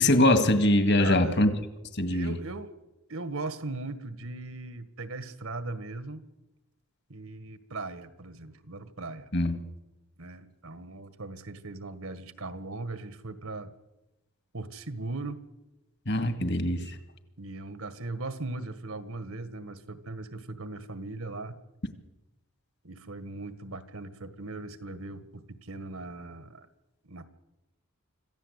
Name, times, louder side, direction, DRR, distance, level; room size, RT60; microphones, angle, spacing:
voice 1, 0.0-1.6 1.9-2.4 9.3-9.6 16.1-17.0, left 1 dB, 50° left, 9 dB, 1.9 m, -23 dB
voice 2, 1.0-1.4 2.1-2.7 3.1-6.2 7.1-9.3 10.2-13.7 14.5-15.4 17.4-21.6 22.8-26.7 27.0-27.3, right 2 dB, 75° right, 12 dB, 1.7 m, -39 dB
26.0 x 15.0 x 8.2 m, 1.0 s
head